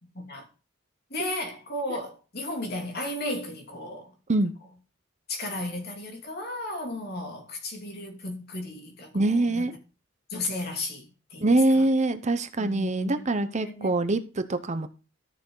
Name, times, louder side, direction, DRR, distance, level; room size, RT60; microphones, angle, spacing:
voice 1, 1.1-4.1 5.3-9.7 10.3-11.5 11.7-11.8 12.6-14.0, left 1 dB, 50° left, 2.9 m, -34 dB
voice 2, 9.1-9.7 11.4-14.9, right 2 dB, 35° right, 0.8 m, -24 dB
13.5 x 6.7 x 3.9 m
head